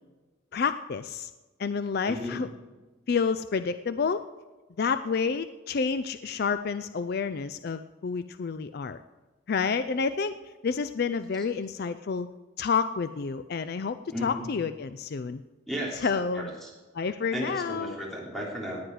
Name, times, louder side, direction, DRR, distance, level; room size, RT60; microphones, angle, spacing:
voice 1, 0.5-1.3 1.6-2.5 3.1-4.2 4.8-9.0 9.5-10.3 10.6-12.3 12.6-15.4 16.0-16.5 16.9-17.9, left 5 dB, 50° left, 11 dB, 0.4 m, -29 dB
voice 2, 2.0-2.4 14.1-14.5 15.7-16.7 17.3-18.8, equal, ahead, -4 dB, 3.3 m, -35 dB
17.5 x 9.6 x 4.8 m, 1.2 s
head